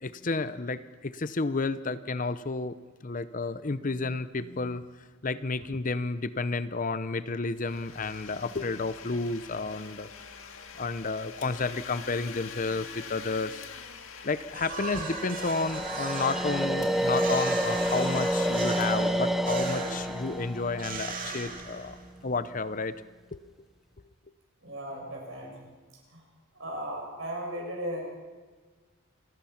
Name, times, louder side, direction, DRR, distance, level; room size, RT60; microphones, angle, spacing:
voice 1, 0.0-2.7 3.0-10.1 10.8-13.6 14.2-22.0 22.2-22.9 23.3-23.4, left 3 dB, 35° left, 14 dB, 0.7 m, -31 dB
Domestic sounds home sounds, 7.6-20.1, left 6 dB, 65° left, 2.0 m, -45 dB
sound 1, 14.5-22.2, right 4 dB, 40° right, 2.8 m, -39 dB
sound 2, 14.8-22.0, equal, ahead, 0.6 m, -29 dB
voice 2, 24.6-25.7 26.1-26.2 26.5-28.1, equal, 60° right, 0 dB, 6.9 m, -36 dB
28.0 x 20.5 x 5.9 m, 1.4 s
head